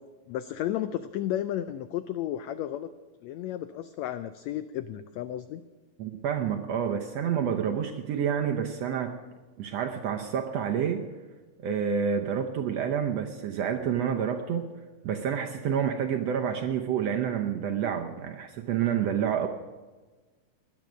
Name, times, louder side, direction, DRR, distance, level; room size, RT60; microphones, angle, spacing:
voice 1, 0.3-2.9 3.2-5.6, left 12 dB, 85° left, 12 dB, 1.5 m, -33 dB
voice 2, 6.0-9.1 9.6-11.0 11.6-14.6 15.0-19.5, right 8 dB, 70° right, 4 dB, 1.6 m, -28 dB
18.0 x 10.5 x 6.2 m, 1.3 s
omnidirectional pair, 3.7 m